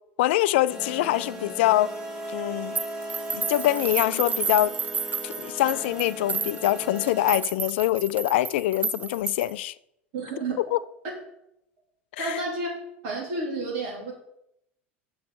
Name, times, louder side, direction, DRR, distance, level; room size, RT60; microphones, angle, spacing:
voice 1, 0.2-1.9 2.3-2.8 3.3-4.7 5.2-9.7 10.6-10.8 12.2-12.4, left 15 dB, 65° left, 0.4 m, -24 dB
sound 1, 0.7-7.4, right 1 dB, 10° right, 2.1 m, -37 dB
sound 2, 2.8-9.6, right 5 dB, 25° right, 0.5 m, -31 dB
voice 2, 10.1-10.6 12.2-12.7 13.0-14.1, right 3 dB, 60° right, 3.1 m, -30 dB
7.0 x 6.1 x 6.3 m
hypercardioid pair, 75°, 6 cm